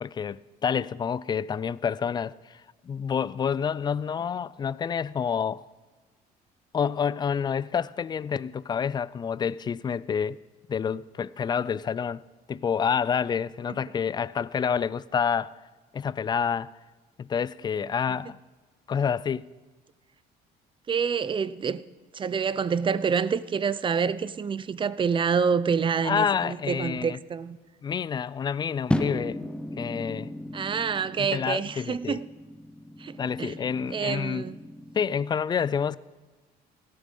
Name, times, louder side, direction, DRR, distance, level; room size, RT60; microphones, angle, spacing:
voice 1, 0.0-5.6 6.7-10.4 10.7-12.2 12.5-15.6 15.9-16.7 17.2-18.4 18.9-19.5 26.0-27.2 27.8-29.4 29.8-30.3 31.2-32.2 33.2-34.5 34.9-36.0, left 7 dB, 25° left, 0.3 m, -28 dB
voice 2, 20.9-21.8 22.1-27.6 30.5-32.3 33.0-33.6 33.9-34.6, right 6 dB, 30° right, 0.5 m, -27 dB
sound 1, 28.9-35.1, left 1 dB, 5° left, 0.8 m, -35 dB
16.5 x 11.0 x 5.3 m
cardioid pair, 110°, 17 cm